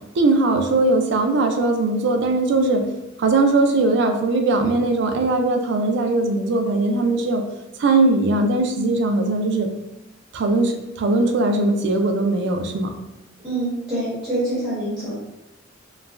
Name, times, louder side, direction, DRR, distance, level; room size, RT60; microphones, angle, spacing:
voice 1, 0.2-2.8 3.2-7.4 7.8-9.7 10.3-12.9, right 2 dB, 65° right, 4 dB, 0.4 m, -20 dB
voice 2, 13.4-15.2, right 1 dB, 10° right, -11 dB, 1.2 m, -25 dB
3.1 x 2.2 x 2.4 m, 0.93 s
head